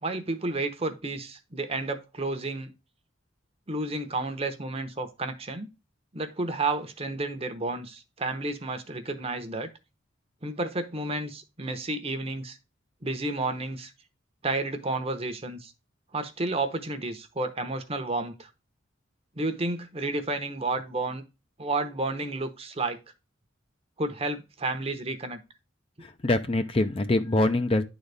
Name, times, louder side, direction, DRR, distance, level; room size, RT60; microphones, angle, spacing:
voice 1, 0.0-2.7 3.7-5.7 6.1-9.7 10.4-12.6 13.0-13.9 14.4-15.7 16.1-18.5 19.4-21.2 21.6-23.0 24.0-25.4, right 2 dB, 30° right, 0.9 m, -31 dB
voice 2, 26.0-27.8, left 2 dB, 30° left, 0.6 m, -24 dB
10.0 x 4.0 x 3.4 m
head